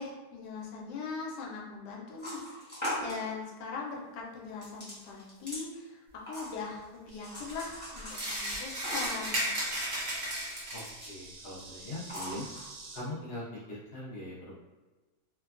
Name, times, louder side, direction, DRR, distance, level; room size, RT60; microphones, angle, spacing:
voice 1, 0.0-9.5, left 4 dB, 90° left, -2 dB, 1.2 m, -41 dB
sound 1, 2.2-3.2 4.6-5.6 6.2-6.8 7.2-9.3 10.1-11.2 11.6-11.7 12.0-12.6, equal, 10° left, 0.8 m, -40 dB
Insect, 7.1-13.0, right 3 dB, 80° right, 1.2 m, -50 dB
sound 2, 8.1-11.0, right 1 dB, 60° right, 0.4 m, -34 dB
voice 2, 10.7-12.5 12.9-14.6, left 1 dB, 60° left, -7 dB, 0.6 m, -41 dB
3.2 x 2.2 x 2.4 m, 1.2 s
omnidirectional pair, 1.8 m